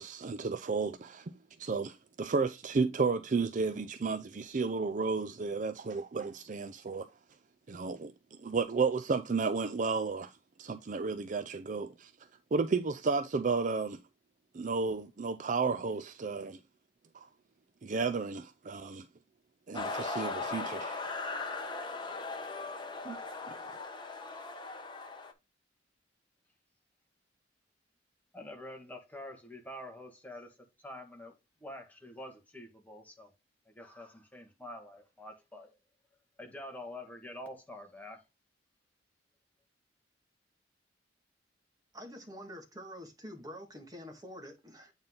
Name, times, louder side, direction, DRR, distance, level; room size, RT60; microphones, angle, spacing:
voice 1, 0.0-1.3 1.6-7.1 7.7-12.1 12.5-14.0 14.5-16.6 17.1-17.3 17.8-19.1 19.7-21.0 23.0-23.2 23.5-23.6, right 4 dB, 40° right, 0.4 m, -32 dB
sound 1, 19.7-25.3, left 3 dB, 25° left, 1.2 m, -38 dB
voice 2, 28.3-31.3 31.6-33.3 33.6-35.8 36.4-38.2, left 1 dB, 10° left, 1.7 m, -47 dB
voice 3, 41.9-44.9, equal, 20° right, 1.9 m, -47 dB
8.8 x 3.9 x 3.7 m
head